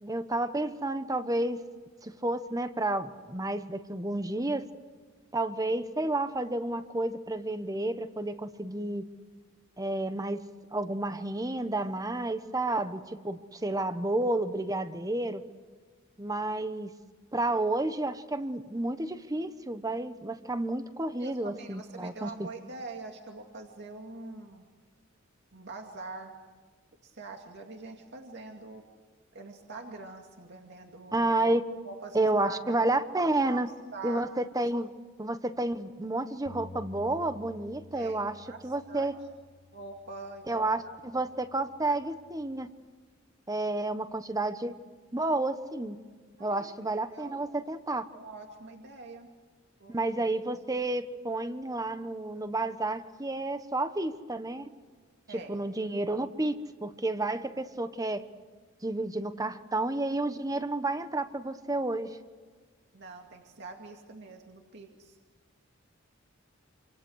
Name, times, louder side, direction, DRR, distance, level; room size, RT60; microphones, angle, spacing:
voice 1, 0.0-1.6 2.0-4.7 5.3-9.1 9.8-10.4 10.7-15.4 16.2-16.9 17.3-22.3 31.1-31.6 32.1-33.7 34.0-34.9 35.2-38.4 38.6-39.1 40.5-42.7 43.5-44.8 45.1-46.0 46.4-48.0 49.9-54.7 55.3-56.6 56.8-58.2 58.8-62.2, right 2 dB, 20° right, 10 dB, 1.2 m, -30 dB
voice 2, 21.2-24.7 25.5-26.4 27.0-28.8 29.3-31.3 31.8-32.9 33.5-33.6 33.9-34.3 37.9-39.1 39.7-41.2 41.8-42.0 46.4-47.3 48.1-49.3 49.8-49.9 55.3-55.5 62.9-65.2, right 3 dB, 60° right, 2 dB, 2.3 m, -44 dB
Bass guitar, 36.5-42.7, left 2 dB, 40° left, 1.0 m, -52 dB
27.5 x 26.0 x 6.5 m, 1.5 s
head